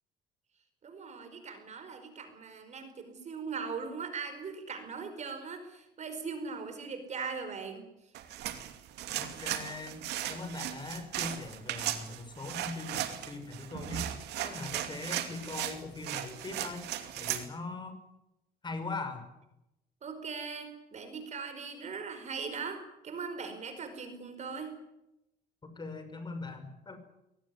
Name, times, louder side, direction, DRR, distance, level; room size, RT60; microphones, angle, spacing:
voice 1, 0.8-7.8 12.1-12.2 20.0-24.8, right 5 dB, 45° right, 8 dB, 5.0 m, -40 dB
sound 1, 8.1-17.5, right 12 dB, 80° right, 2.6 m, -37 dB
voice 2, 9.2-10.0 10.3-14.1 14.4-16.9 17.2-18.0 18.6-19.2 25.6-27.0, left 3 dB, 25° left, 8 dB, 6.1 m, -41 dB
22.5 x 19.0 x 9.8 m, 0.89 s
cardioid pair, 110°, 17 cm